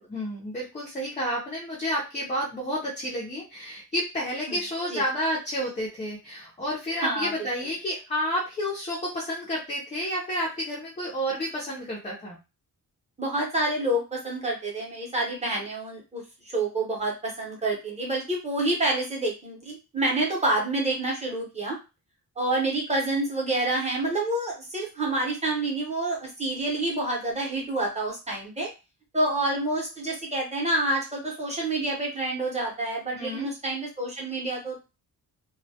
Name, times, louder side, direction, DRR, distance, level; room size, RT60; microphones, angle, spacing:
voice 1, 0.1-12.4 33.1-33.5, equal, 20° left, -5 dB, 0.5 m, -30 dB
voice 2, 7.0-7.3 13.2-21.8 22.4-28.7 29.1-34.8, right 2 dB, 20° right, -2 dB, 0.8 m, -28 dB
2.2 x 2.1 x 2.7 m, 0.28 s
wide cardioid pair, 175°, 38 cm